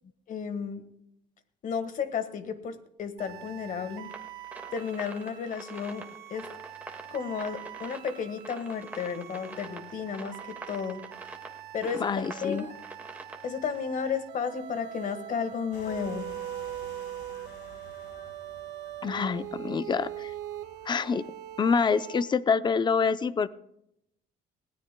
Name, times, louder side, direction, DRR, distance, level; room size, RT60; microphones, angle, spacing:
voice 1, 0.3-0.8 1.6-4.1 4.7-6.5 7.1-11.0 11.7-12.8 13.4-16.3, left 6 dB, 50° left, 10 dB, 1.5 m, -33 dB
sound 1, 3.2-22.2, right 12 dB, 80° right, 1.3 m, -42 dB
sound 2, 4.0-13.8, right 2 dB, 10° right, 1.8 m, -45 dB
voice 2, 12.0-12.6 19.0-20.3 20.9-21.2 21.6-23.5, left 5 dB, 25° left, 14 dB, 0.5 m, -26 dB
sound 3, 15.7-21.9, left 5 dB, 80° left, 2.1 m, -52 dB
20.0 x 17.0 x 2.2 m, 0.79 s
cardioid pair, 110°, 17 cm